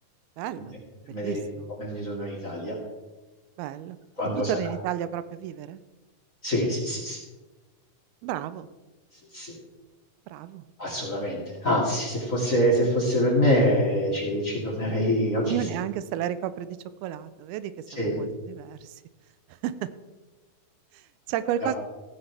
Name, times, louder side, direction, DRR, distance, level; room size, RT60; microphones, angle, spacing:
voice 1, 0.4-0.8 1.0-1.7 3.6-4.0 4.5-5.8 8.2-8.7 10.3-10.7 15.5-19.0 19.6-19.9 20.9-21.8, right 11 dB, 90° right, 14 dB, 2.5 m, -32 dB
voice 2, 1.1-1.4 1.8-2.8 4.2-4.7 6.4-7.2 9.3-9.6 10.8-15.6 18.0-18.2 21.6-21.7, equal, 25° left, -2 dB, 2.1 m, -25 dB
16.0 x 9.6 x 3.4 m, 1.2 s
omnidirectional pair, 4.3 m